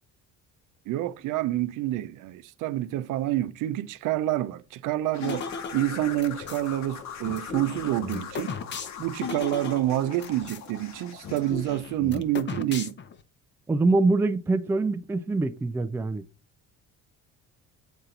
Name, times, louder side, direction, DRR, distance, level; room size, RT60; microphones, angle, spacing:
voice 1, 0.9-8.5 9.0-12.9, right 14 dB, 70° right, 0.7 m, -28 dB
sound 1, 5.1-11.8, left 7 dB, 55° left, 1.1 m, -41 dB
sound 2, 5.2-6.7 7.2-10.7 10.9-11.0 11.2-13.2, left 5 dB, 35° left, 0.7 m, -36 dB
voice 2, 13.7-16.2, right 3 dB, 10° right, 0.3 m, -24 dB
8.1 x 4.4 x 3.8 m
cardioid pair, 120°, 32 cm